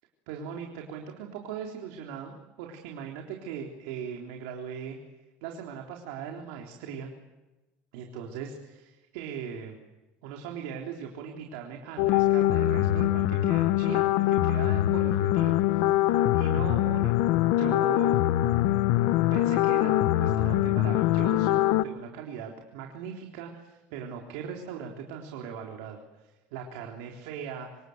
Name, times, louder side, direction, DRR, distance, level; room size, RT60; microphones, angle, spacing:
voice 1, 0.3-5.0 5.4-7.1 7.9-9.8 10.2-17.1 17.5-18.2 19.3-27.7, right 7 dB, 85° right, 2 dB, 3.8 m, -39 dB
sound 1, 12.0-21.8, left 14 dB, 70° left, 1.1 m, -23 dB
26.5 x 26.5 x 8.1 m, 1.1 s
cardioid pair, 165°, 5 cm